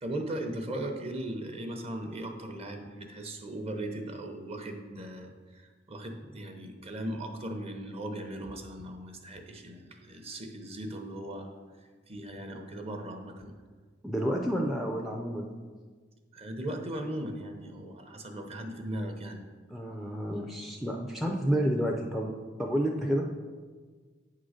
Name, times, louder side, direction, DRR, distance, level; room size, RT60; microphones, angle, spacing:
voice 1, 0.0-11.6 12.1-13.5 16.3-19.4, right 1 dB, 30° right, 4 dB, 0.8 m, -38 dB
voice 2, 14.0-15.5 19.7-22.3 22.6-23.3, equal, ahead, 1 dB, 0.4 m, -30 dB
8.7 x 3.8 x 6.4 m, 1.5 s
head